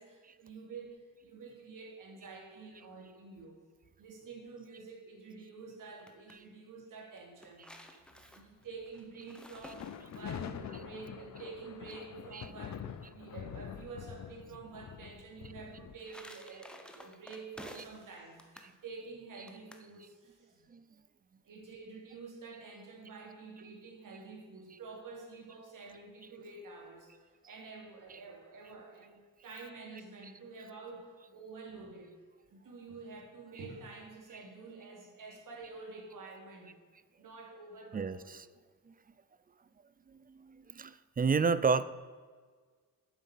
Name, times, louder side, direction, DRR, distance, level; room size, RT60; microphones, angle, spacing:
voice 1, 0.0-3.6 4.0-7.7 8.1-20.7 21.4-27.1 27.4-32.1 32.5-36.7 37.2-38.3, right 4 dB, 65° right, 1 dB, 2.8 m, -49 dB
sound 1, 5.8-6.4 7.2-10.5 15.6-18.1 18.4-18.7 19.5-19.9, equal, 5° left, 0.9 m, -52 dB
sound 2, 9.6-16.0, left 8 dB, 55° left, 0.6 m, -45 dB
voice 2, 37.9-38.5 38.9-39.0 40.1-41.8, right 5 dB, 25° right, 16 dB, 0.4 m, -32 dB
9.4 x 8.0 x 8.2 m, 1.5 s
wide cardioid pair, 165°, 34 cm